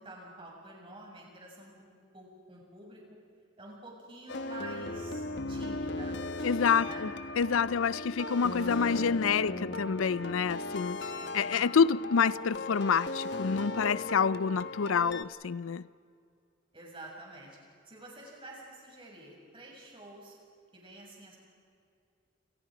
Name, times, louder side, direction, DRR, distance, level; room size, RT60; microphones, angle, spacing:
voice 1, 0.0-3.2 3.6-6.2 6.8-7.1 11.1-11.2 16.7-17.6 17.9-20.4 20.7-21.4, right 2 dB, 25° right, 7.0 m, -48 dB
sound 1, 4.3-15.2, left 2 dB, 55° left, 1.1 m, -37 dB
voice 2, 6.4-7.1 7.4-15.9, left 6 dB, 80° left, 0.5 m, -28 dB
29.5 x 28.5 x 5.1 m
head